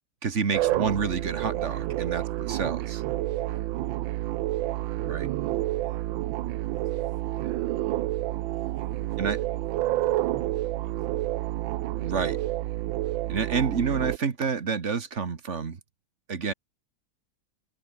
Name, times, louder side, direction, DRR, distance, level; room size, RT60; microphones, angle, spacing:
voice 1, 0.2-2.2 2.5-3.0 5.0-5.3 9.2-9.4 12.0-12.4 13.3-15.8 16.3-16.5, right 5 dB, 35° right, 1.6 m, -28 dB
sound 1, 0.5-14.2, right 15 dB, 75° right, 1.3 m, -29 dB
voice 2, 2.0-2.3 3.2-4.0 4.5-5.1 5.8-6.2 6.7-7.7 8.2-11.1 12.2-12.5 13.5-13.8, left 2 dB, 45° left, 8.6 m, -58 dB
omnidirectional pair, 2.3 m